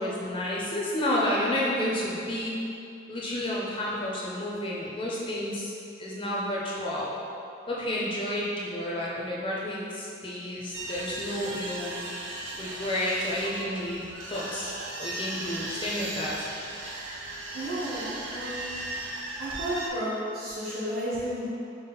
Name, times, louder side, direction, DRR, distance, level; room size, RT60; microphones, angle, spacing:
voice 1, 0.0-2.5 3.1-5.7 6.0-7.1 7.7-11.9 12.6-14.0 14.3-14.7 15.0-16.5, left 1 dB, 25° left, -5 dB, 0.5 m, -30 dB
sound 1, 10.7-19.9, right 2 dB, 90° right, 0.6 m, -37 dB
voice 2, 17.5-18.8 19.4-21.5, equal, 55° right, -10 dB, 1.3 m, -32 dB
5.5 x 2.0 x 3.8 m, 2.6 s
head